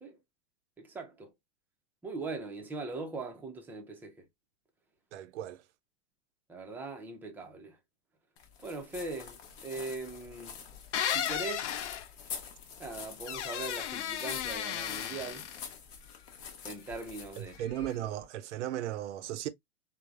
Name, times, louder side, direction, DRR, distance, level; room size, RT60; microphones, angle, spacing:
voice 1, 0.8-1.3 2.0-4.3 6.5-7.8 8.6-10.6 11.1-11.7 12.8-15.5 16.6-17.6, right 3 dB, 5° right, 0.4 m, -40 dB
voice 2, 5.1-5.6 17.4-19.5, right 12 dB, 80° right, 0.5 m, -36 dB
sound 1, 8.4-18.3, left 7 dB, 60° left, 0.9 m, -46 dB
sound 2, 10.9-12.0 13.3-15.7, left 10 dB, 80° left, 0.5 m, -34 dB
3.2 x 2.0 x 2.2 m
hypercardioid pair, 120°, 35 cm